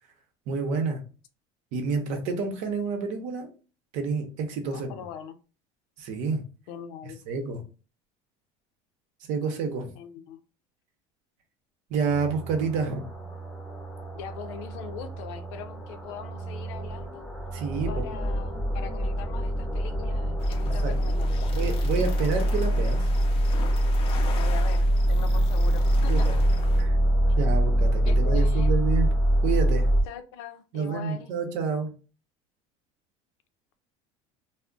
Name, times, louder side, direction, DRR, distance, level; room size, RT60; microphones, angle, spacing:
voice 1, 0.5-1.0 1.7-3.5 3.9-4.9 6.0-6.4 7.3-7.6 9.3-9.9 11.9-13.0 17.5-18.1 20.6-20.9 21.5-23.1 25.3-25.4 26.1-26.3 26.8-27.0 27.4-29.1 29.4-29.9 30.7-31.9, right 5 dB, 60° right, 0.8 m, -29 dB
voice 2, 4.7-5.4 6.7-7.2 10.0-10.4 14.1-17.3 17.9-21.4 24.1-26.4 28.1-28.8 30.0-31.3, left 8 dB, 90° left, 0.5 m, -41 dB
sound 1, 12.1-30.0, right 1 dB, 5° left, 0.8 m, -25 dB
sound 2, 20.4-26.8, left 4 dB, 40° left, 0.5 m, -40 dB
2.3 x 2.0 x 3.7 m
cardioid pair, 145°, 15 cm